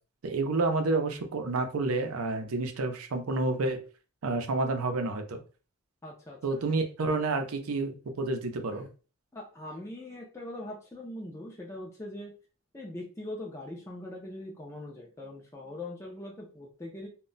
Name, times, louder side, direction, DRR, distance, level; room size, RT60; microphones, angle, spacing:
voice 1, 0.2-3.8 4.2-5.4 6.4-8.9, right 3 dB, 90° right, 6 dB, 0.5 m, -29 dB
voice 2, 6.0-6.6 9.3-12.3 12.7-17.1, left 1 dB, 15° left, -2 dB, 0.4 m, -41 dB
2.2 x 2.0 x 3.8 m, 0.36 s
head